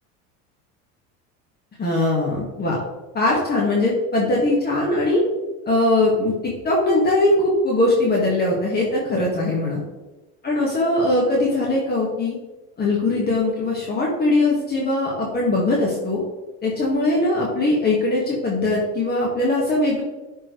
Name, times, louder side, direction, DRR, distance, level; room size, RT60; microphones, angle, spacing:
voice 1, 1.8-2.8 3.1-5.2 5.7-9.8 10.4-12.4 12.8-16.2 16.6-20.0, left 2 dB, 30° left, -4 dB, 1.8 m, -21 dB
10.5 x 4.5 x 3.2 m, 1.1 s
cardioid pair, 120°, 32 cm